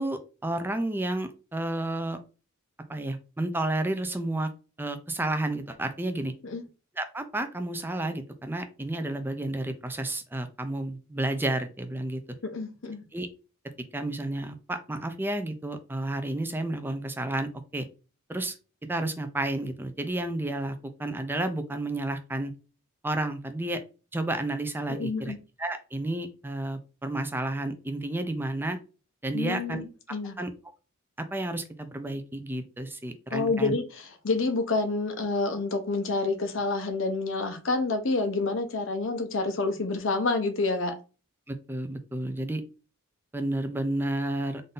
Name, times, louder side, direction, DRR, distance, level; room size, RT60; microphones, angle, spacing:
voice 1, 0.0-2.2 2.9-4.5 4.8-6.3 7.0-12.2 13.1-13.3 13.9-17.9 18.3-18.5 18.8-22.5 23.0-23.8 24.1-25.3 25.6-28.8 29.2-29.8 30.4-30.5 31.2-33.7 41.5-42.6 43.3-44.6, right 1 dB, 10° right, 0.5 m, -31 dB
voice 2, 12.4-13.0 24.9-25.4 29.3-30.4 33.3-33.8 34.2-40.9, left 3 dB, 65° left, 0.8 m, -28 dB
3.8 x 2.7 x 3.7 m
head